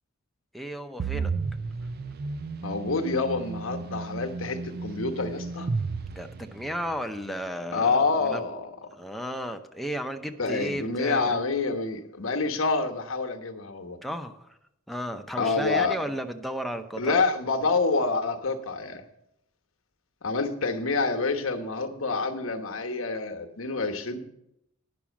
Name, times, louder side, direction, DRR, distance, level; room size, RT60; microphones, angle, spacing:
voice 1, 0.5-1.3 6.1-8.4 8.9-11.4 14.0-14.5 14.9-17.2, equal, ahead, 5 dB, 0.7 m, -34 dB
sound 1, 1.0-7.0, right 4 dB, 50° right, 0.5 m, -33 dB
voice 2, 2.6-5.7 7.7-8.7 10.4-14.0 15.4-16.0 17.0-19.0 20.2-24.2, left 3 dB, 80° left, 6 dB, 1.1 m, -27 dB
10.0 x 6.1 x 7.2 m, 0.82 s
head